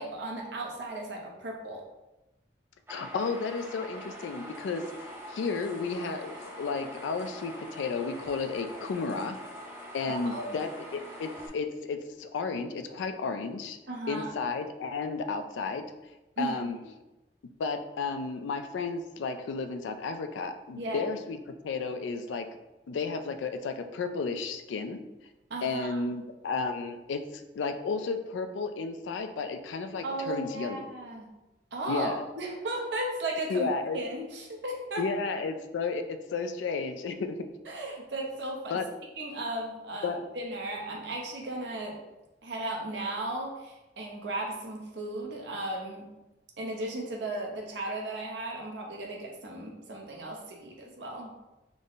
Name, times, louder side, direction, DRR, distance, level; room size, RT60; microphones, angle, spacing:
voice 1, 0.0-1.8 10.1-10.5 13.9-14.3 16.4-16.9 20.8-21.1 25.5-26.0 30.0-31.3 31.7-35.0 37.6-38.8 39.2-42.0 42.4-46.1 46.6-51.3, right 2 dB, 75° right, 0 dB, 0.7 m, -35 dB
voice 2, 2.9-4.8 5.3-9.4 9.9-13.8 14.1-15.8 16.4-16.8 17.6-21.4 21.6-22.5 22.9-25.0 25.6-30.8 31.9-32.2 33.5-34.0 35.0-37.4 38.7-38.8 40.0-40.2, left 4 dB, 85° left, 7 dB, 0.3 m, -33 dB
sound 1, 2.9-11.5, equal, 15° right, 0.5 m, -44 dB
3.6 x 2.1 x 3.8 m, 1.0 s
head